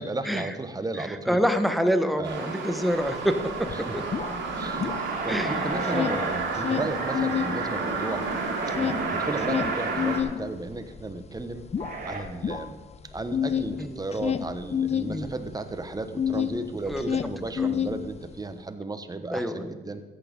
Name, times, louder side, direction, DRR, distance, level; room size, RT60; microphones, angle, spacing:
voice 1, 0.0-1.4 2.2-2.4 3.7-4.0 4.6-4.9 5.2-8.3 8.7-11.6 12.0-12.8 13.1-20.0, right 2 dB, 20° right, 9 dB, 1.2 m, -34 dB
voice 2, 1.0-3.4 3.8-4.0 5.3-5.7 5.9-6.1 13.8-14.0 15.1-15.3 16.9-17.0 17.6-17.7 19.3-19.6, equal, ahead, 7 dB, 1.2 m, -26 dB
sound 1, 2.2-10.2, right 4 dB, 65° right, 2.6 m, -31 dB
sound 2, 3.1-3.2 3.4-5.4 5.7-7.6 7.9-16.6 16.9-18.4, left 8 dB, 30° left, 0.6 m, -29 dB
sound 3, 4.8-6.5 8.0-10.2 11.8-12.2, right 2 dB, 45° right, 2.8 m, -35 dB
13.5 x 8.6 x 5.3 m, 1.4 s
cardioid pair, 90°, 20 cm